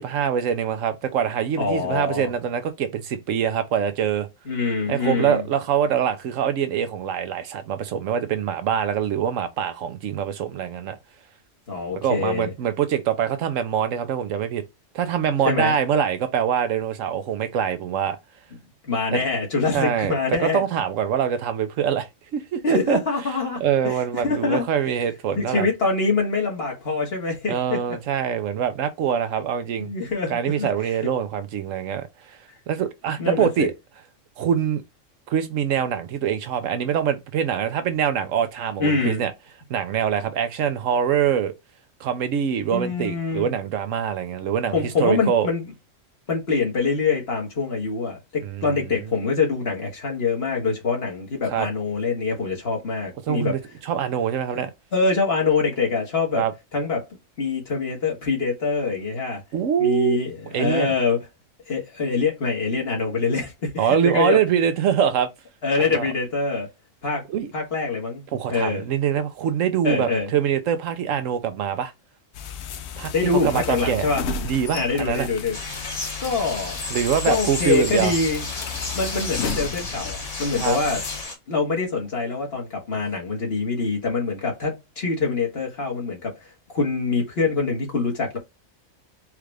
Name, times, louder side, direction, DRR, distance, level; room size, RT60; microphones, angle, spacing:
voice 1, 0.0-4.3 4.9-11.0 11.9-14.6 14.9-18.2 19.1-19.2 19.7-22.1 22.3-23.0 23.6-25.7 27.5-29.9 30.3-32.4 32.7-33.7 34.4-34.8 35.3-39.3 39.7-41.5 42.0-44.7 45.0-45.5 48.4-48.6 51.5-51.7 53.3-54.7 56.4-56.5 59.5-60.2 60.5-60.9 63.8-65.3 65.8-66.1 67.3-67.5 68.3-71.9 73.0-73.1 73.4-74.1 74.4-75.3 76.9-78.1 80.6-80.8, right 8 dB, 80° right, 1.0 m, -24 dB
voice 2, 1.6-2.3 4.4-5.4 11.7-12.5 15.4-15.7 18.8-20.6 22.6-24.7 25.4-28.0 29.8-31.0 33.2-33.7 38.8-39.2 42.7-43.5 44.7-45.7 46.3-53.5 54.5-54.6 54.9-56.4 56.7-57.0 57.4-59.4 59.8-61.2 61.7-64.4 65.6-66.7 67.0-67.3 67.5-68.2 68.5-68.9 69.8-70.3 73.1-74.2 74.7-75.6 76.2-76.8 77.2-78.4 78.9-81.0 81.5-86.3 86.7-88.4, left 4 dB, 50° left, 1.6 m, -24 dB
sound 1, 72.3-81.2, left 6 dB, 65° left, 0.8 m, -34 dB
sound 2, 75.5-81.3, left 2 dB, 30° left, 1.2 m, -32 dB
4.6 x 2.5 x 3.2 m
omnidirectional pair, 1.4 m